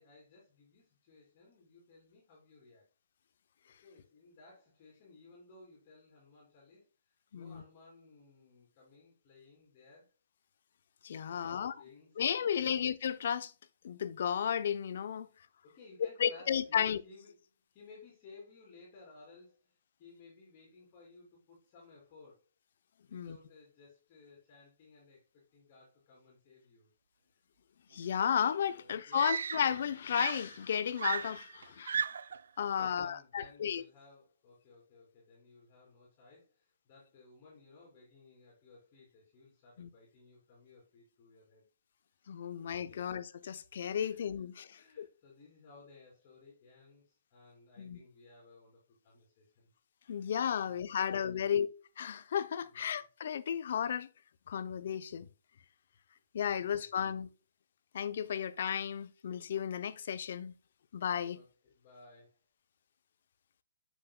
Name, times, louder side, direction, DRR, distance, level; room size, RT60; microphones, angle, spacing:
voice 1, 0.0-2.9 3.8-10.1 11.2-12.8 15.3-15.4 15.6-17.4 17.7-22.5 23.1-26.9 27.3-27.4 28.7-29.4 32.6-41.7 42.5-43.1 44.0-44.3 44.7-49.7 50.1-50.3 50.6-51.6 52.7-53.0 56.2-56.3 56.5-57.0 61.3-62.5, left 3 dB, 35° left, 3.0 m, -58 dB
voice 2, 7.3-7.6 11.0-11.7 12.2-13.5 13.8-15.3 16.2-17.0 23.1-23.4 27.9-32.0 32.6-33.8 39.8-39.9 42.3-45.1 47.8-48.0 50.1-51.7 52.0-54.1 54.5-55.3 56.3-57.3 57.9-60.5 60.9-61.4, left 8 dB, 60° left, 0.6 m, -33 dB
Screaming, 28.3-28.4 29.1-29.9 30.1-32.4 33.4-33.7, right 6 dB, 75° right, 0.3 m, -36 dB
7.7 x 6.0 x 2.3 m
hypercardioid pair, 150°, 0 cm